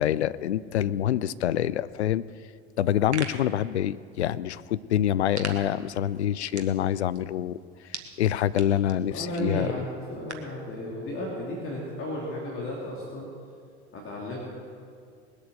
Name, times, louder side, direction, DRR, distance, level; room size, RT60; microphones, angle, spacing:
voice 1, 0.0-2.2 2.8-7.6 7.9-9.7, left 11 dB, 80° left, 17 dB, 0.5 m, -26 dB
voice 2, 0.7-1.0 9.1-13.3 13.9-14.4, equal, 40° left, -3 dB, 2.9 m, -34 dB
sound 1, 2.8-10.6, right 5 dB, 80° right, 1.2 m, -44 dB
20.0 x 8.0 x 7.0 m, 2.2 s
figure-of-eight pair, 70°, 33 cm